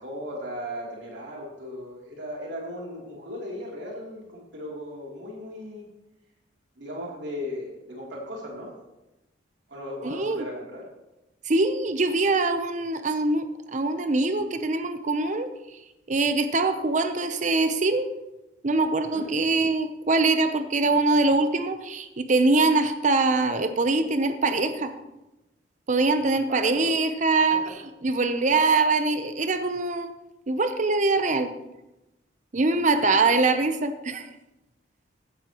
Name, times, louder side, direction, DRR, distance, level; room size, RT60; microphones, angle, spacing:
voice 1, 0.0-5.9 6.8-8.7 9.7-10.9 19.1-19.3 26.5-26.9 27.5-27.8 32.9-33.0, equal, 75° right, -2 dB, 3.1 m, -37 dB
voice 2, 10.0-10.4 11.5-15.5 16.1-18.1 18.6-24.9 25.9-27.6 28.0-30.1 30.5-31.5 32.5-34.2, right 3 dB, 40° right, 9 dB, 0.7 m, -23 dB
15.0 x 10.5 x 3.0 m, 0.97 s
head